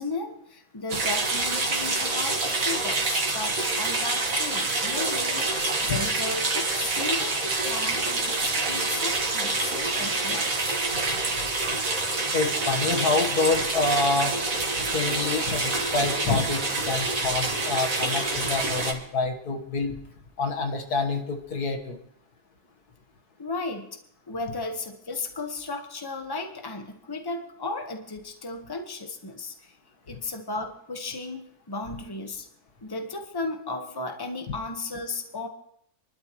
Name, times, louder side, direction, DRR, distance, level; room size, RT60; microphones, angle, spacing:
voice 1, 0.0-10.8 23.4-24.0 24.3-29.8 30.1-32.5 32.8-35.5, left 3 dB, 15° left, 4 dB, 1.2 m, -35 dB
sound 1, 0.9-18.9, right 3 dB, 60° right, 2.1 m, -27 dB
voice 2, 12.3-14.4 14.8-20.0 20.4-22.0, left 3 dB, 80° left, 4 dB, 2.0 m, -27 dB
28.0 x 11.5 x 3.1 m, 0.71 s
omnidirectional pair, 1.6 m